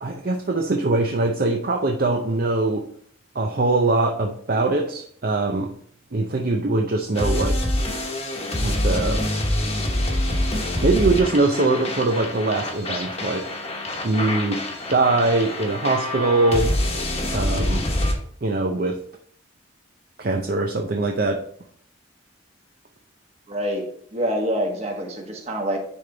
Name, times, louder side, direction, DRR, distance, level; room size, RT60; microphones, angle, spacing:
voice 1, 0.0-2.8 3.3-5.7 6.1-7.6 8.6-9.2 10.8-13.5 14.0-14.6 14.9-16.7 17.3-17.9 18.4-19.0 20.2-21.4, right 2 dB, 45° right, 2 dB, 0.6 m, -22 dB
sound 1, 7.1-18.1, left 1 dB, 30° left, 1.1 m, -25 dB
voice 2, 23.5-23.8 24.1-25.8, equal, 30° right, 1 dB, 1.4 m, -26 dB
10.0 x 3.4 x 3.9 m, 0.62 s
head